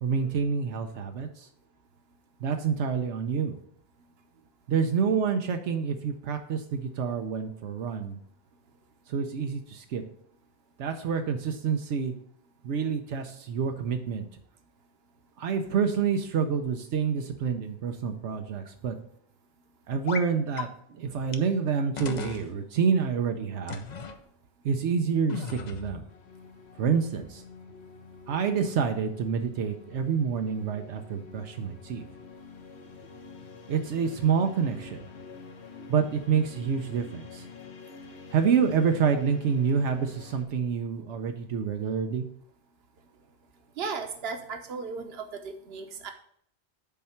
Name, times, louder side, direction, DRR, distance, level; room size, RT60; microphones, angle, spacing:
voice 1, 0.0-1.5 2.4-3.6 4.7-8.2 9.1-10.0 10.8-12.1 12.6-14.3 15.4-19.0 19.9-23.9 24.6-26.0 26.8-27.4 28.3-32.0 33.7-35.1 35.9-37.5 38.3-42.2, right 6 dB, 85° right, 5 dB, 1.0 m, -28 dB
sound 1, 20.1-20.3 20.6-20.7 21.3-21.4 22.0-22.4 23.7-24.2 25.3-26.0, left 6 dB, 45° left, 0.6 m, -36 dB
sound 2, 26.1-40.5, left 4 dB, 70° left, 1.1 m, -47 dB
voice 2, 43.8-46.1, right 5 dB, 60° right, 5 dB, 1.1 m, -36 dB
7.2 x 4.3 x 5.7 m, 0.66 s
omnidirectional pair, 1.2 m